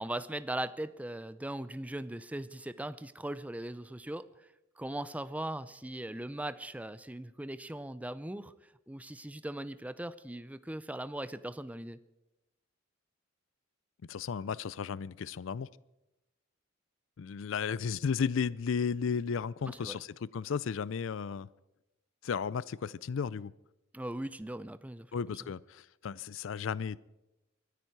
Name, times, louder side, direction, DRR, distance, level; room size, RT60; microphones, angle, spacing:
voice 1, 0.0-4.3 4.8-8.5 8.9-12.0 19.7-20.0 23.9-25.1, right 1 dB, 5° right, 0.5 m, -39 dB
voice 2, 14.1-15.7 17.2-21.5 22.2-23.5 25.1-27.0, left 6 dB, 70° left, 0.4 m, -34 dB
23.5 x 9.9 x 4.7 m
head